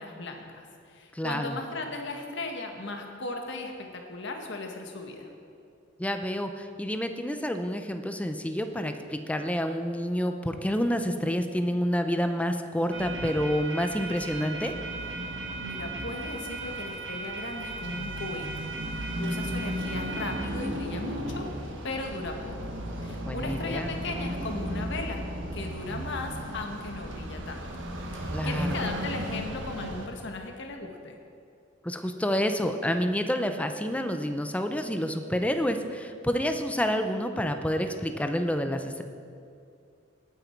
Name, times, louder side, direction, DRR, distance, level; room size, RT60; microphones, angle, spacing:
voice 1, 0.0-5.3 15.6-18.5 18.9-21.5 21.8-22.5 23.0-25.2 25.5-27.6 28.1-31.2, left 2 dB, 65° left, 3 dB, 1.6 m, -37 dB
voice 2, 1.1-1.6 6.0-14.7 23.3-23.9 28.3-28.8 31.8-39.0, equal, 5° left, 7 dB, 0.7 m, -28 dB
sound 1, 12.9-30.1, right 1 dB, 70° right, 1.6 m, -35 dB
19.0 x 9.1 x 4.6 m, 2.4 s
head